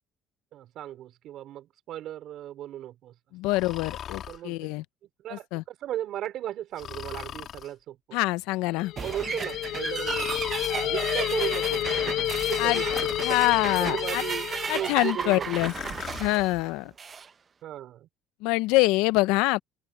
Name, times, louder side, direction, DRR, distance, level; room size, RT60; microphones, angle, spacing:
voice 1, 0.5-3.1 4.3-4.7 5.2-8.2 9.0-10.3 10.8-12.9 13.3-13.4 13.8-15.5 17.6-18.1, right 12 dB, 55° right, 4.9 m, -36 dB
voice 2, 3.3-4.8 5.3-5.6 8.1-8.9 12.6-12.8 13.2-14.2 14.7-15.7 16.2-16.9 18.4-19.6, left 20 dB, 85° left, 0.5 m, -25 dB
Breathing, 3.5-4.4 6.8-7.7 10.0-10.8 12.9-13.4 15.5-16.3, left 9 dB, 45° left, 2.9 m, -39 dB
sound 1, 8.8-15.2, left 13 dB, 60° left, 1.1 m, -30 dB
sound 2, 9.0-17.3, right 6 dB, 25° right, 0.7 m, -34 dB
open air
cardioid pair, 145°, 0 cm